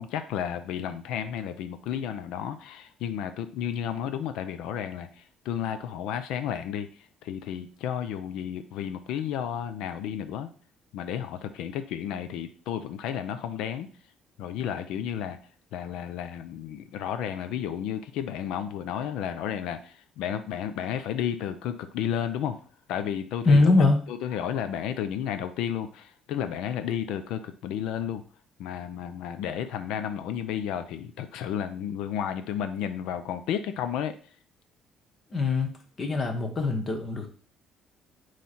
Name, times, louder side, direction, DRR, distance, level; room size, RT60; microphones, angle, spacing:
voice 1, 0.0-10.5 10.9-13.9 14.4-15.4 15.7-22.6 22.9-23.7 24.1-28.2 28.6-34.1, left 9 dB, 90° left, 10 dB, 0.6 m, -32 dB
voice 2, 23.4-24.0 35.3-37.3, left 3 dB, 30° left, 5 dB, 1.2 m, -22 dB
9.2 x 3.3 x 4.3 m, 0.42 s
cardioid pair, 155°, 0 cm